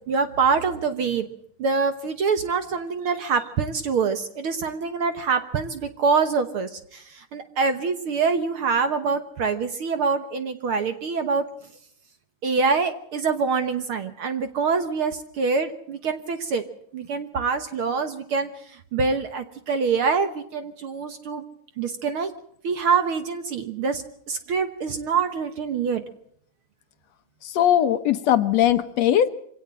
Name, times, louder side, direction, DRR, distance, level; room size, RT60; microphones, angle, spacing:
voice 1, 0.1-1.3 1.6-11.4 12.4-16.6 16.9-21.4 21.8-22.3 22.6-26.0, right 5 dB, 55° right, 9 dB, 1.7 m, -25 dB
voice 2, 27.4-29.3, left 11 dB, 70° left, 12 dB, 2.1 m, -20 dB
24.5 x 17.5 x 7.5 m, 0.67 s
omnidirectional pair, 3.4 m